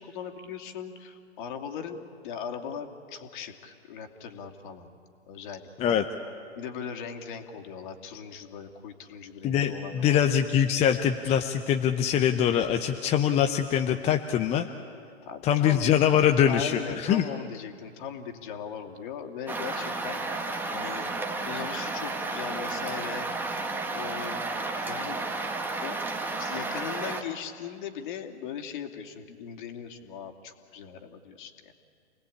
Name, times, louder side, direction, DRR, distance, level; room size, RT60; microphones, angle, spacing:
voice 1, 0.0-5.0 5.3-6.0 6.6-10.2 15.3-15.9 16.5-21.1 21.4-23.3 23.9-24.4 24.8-25.2 25.8-26.0 26.4-31.7, left 7 dB, 45° left, 3 dB, 2.7 m, -39 dB
voice 2, 9.4-14.7 15.4-17.3, left 9 dB, 20° left, 6 dB, 0.8 m, -23 dB
sound 1, 19.5-27.2, right 3 dB, 5° right, 1.5 m, -32 dB
29.0 x 19.0 x 8.6 m, 2.4 s
figure-of-eight pair, 120°, 34 cm